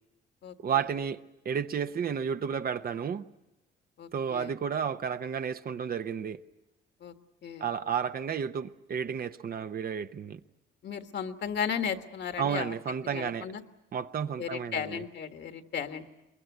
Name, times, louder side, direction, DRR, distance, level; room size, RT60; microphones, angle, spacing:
voice 1, 0.6-3.2 4.1-6.4 7.6-10.4 12.4-13.5 13.9-15.0, right 7 dB, 50° right, 0.9 m, -32 dB
voice 2, 4.0-4.5 7.0-7.1 7.4-7.6 10.8-12.7 13.1-13.6 14.4-16.0, left 7 dB, 60° left, 1.6 m, -35 dB
23.0 x 22.0 x 9.3 m
cardioid pair, 90°, 20 cm